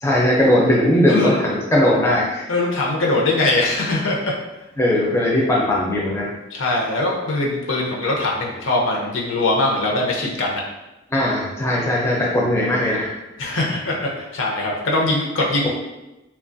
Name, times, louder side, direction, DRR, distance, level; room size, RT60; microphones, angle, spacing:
voice 1, 0.0-2.5 4.8-6.3 11.1-13.1, left 1 dB, 15° left, -4 dB, 0.4 m, -19 dB
voice 2, 1.1-1.4 2.5-4.3 6.5-10.6 13.4-15.7, left 2 dB, 75° left, -2 dB, 0.6 m, -21 dB
2.9 x 2.3 x 2.5 m, 1.0 s
head